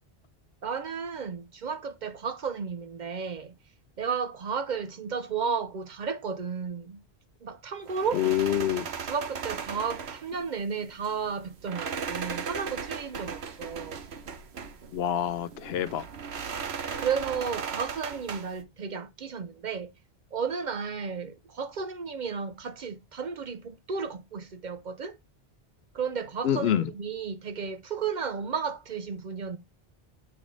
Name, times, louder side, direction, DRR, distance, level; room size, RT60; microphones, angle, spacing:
voice 1, 0.6-3.5 4.0-7.0 7.4-8.2 9.1-14.0 17.0-19.9 20.3-25.2 25.9-29.6, right 6 dB, 55° right, 0.6 m, -33 dB
sound 1, 7.9-18.6, right 6 dB, 80° right, 1.2 m, -37 dB
voice 2, 8.1-8.9 14.9-16.0 26.4-26.9, left 10 dB, 75° left, 0.8 m, -26 dB
8.4 x 3.3 x 3.8 m
omnidirectional pair, 1.1 m